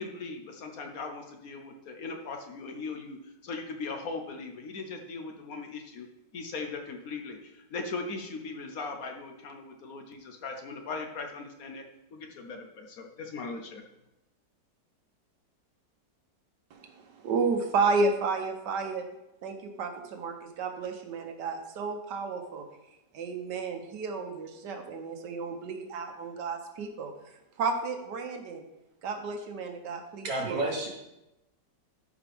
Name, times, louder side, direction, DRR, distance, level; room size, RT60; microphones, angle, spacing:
voice 1, 0.0-6.1 6.3-11.9 12.1-13.8, left 4 dB, 60° left, 4 dB, 1.1 m, -39 dB
voice 2, 16.7-19.1 19.4-22.6 23.1-27.1 27.6-28.6 29.0-30.6, right 4 dB, 75° right, 5 dB, 1.5 m, -32 dB
voice 3, 30.2-30.9, right 2 dB, 55° right, -1 dB, 2.0 m, -30 dB
13.5 x 5.0 x 3.5 m, 0.91 s
omnidirectional pair, 1.9 m